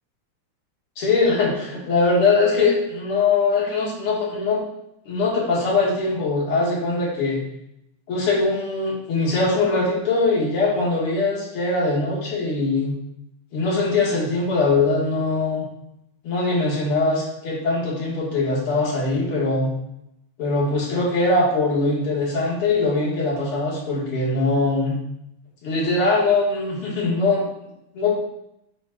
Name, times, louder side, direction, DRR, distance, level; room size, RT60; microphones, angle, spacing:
voice 1, 1.0-4.6 5.1-7.4 8.1-12.9 13.5-15.7 16.2-19.7 20.4-25.0 25.6-27.4 27.9-28.2, left 3 dB, 85° left, -5 dB, 2.8 m, -21 dB
8.2 x 5.4 x 2.5 m, 0.81 s
omnidirectional pair, 2.4 m